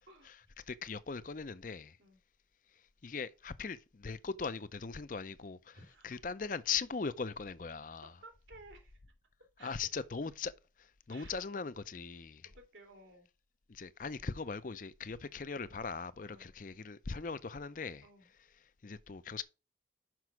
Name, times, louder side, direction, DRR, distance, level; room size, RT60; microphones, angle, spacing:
voice 1, 0.7-2.0 3.0-5.8 6.0-8.1 9.6-10.5 10.8-12.5 13.7-18.1 18.8-19.4, left 5 dB, 45° left, 0.5 m, -40 dB
voice 2, 5.7-6.2 8.0-9.0 9.6-9.8 11.1-11.3 12.4-13.3 16.2-16.5 18.0-18.3, right 2 dB, 90° right, 2.5 m, -56 dB
6.1 x 6.0 x 4.7 m
head